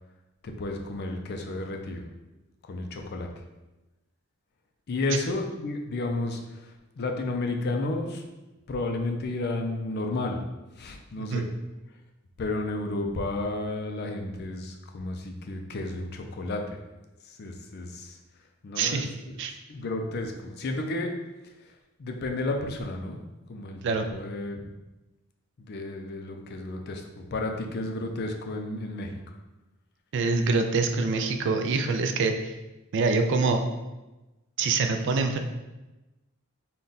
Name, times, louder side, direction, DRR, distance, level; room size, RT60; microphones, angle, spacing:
voice 1, 0.4-2.1 2.6-3.3 4.9-8.2 8.7-10.4 10.8-11.4 12.4-16.8 17.2-18.2 18.6-19.4 19.7-21.1 22.0-23.2 23.5-23.8 24.1-24.6 25.6-29.2, left 2 dB, 45° left, 4 dB, 0.4 m, -32 dB
voice 2, 18.8-19.1 19.4-19.5 23.8-24.0 30.1-32.5 32.9-33.7 34.6-35.4, right 4 dB, 55° right, 5 dB, 0.4 m, -25 dB
3.8 x 2.2 x 3.9 m, 1.1 s
head